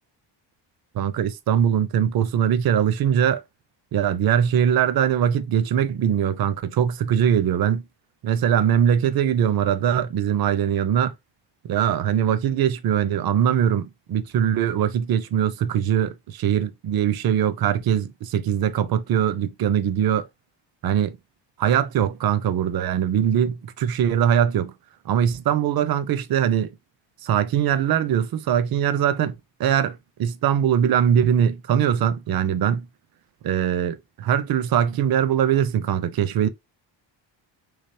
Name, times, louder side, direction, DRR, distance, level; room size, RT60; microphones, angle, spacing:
voice 1, 0.9-3.4 3.9-7.8 8.2-11.1 11.6-20.2 20.8-21.2 21.6-24.7 25.1-26.7 27.2-32.9 33.4-36.5, right 9 dB, 55° right, 0.6 m, -21 dB
3.6 x 3.3 x 2.6 m
wide cardioid pair, 170°, 45 cm